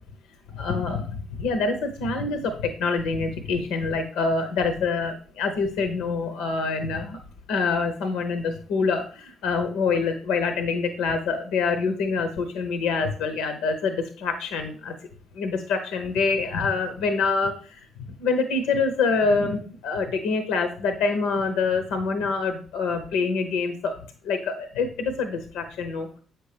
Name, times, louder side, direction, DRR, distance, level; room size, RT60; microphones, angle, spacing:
voice 1, 0.5-7.2 7.5-14.9 15.3-17.8 18.2-23.9 24.2-26.1, left 4 dB, 75° left, 7 dB, 0.7 m, -26 dB
7.8 x 5.9 x 3.2 m, 0.42 s
hypercardioid pair, 45°, 0 cm